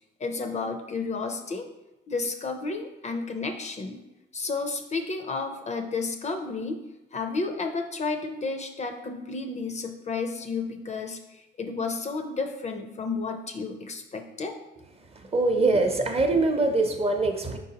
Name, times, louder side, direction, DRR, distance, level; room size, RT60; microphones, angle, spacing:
voice 1, 0.2-1.7 2.1-4.0 4.3-6.8 7.1-14.5, left 4 dB, 35° left, 6 dB, 0.4 m, -32 dB
voice 2, 15.0-17.6, right 2 dB, 30° right, 4 dB, 0.6 m, -24 dB
4.7 x 3.9 x 2.8 m, 0.99 s
cardioid pair, 90°, 20 cm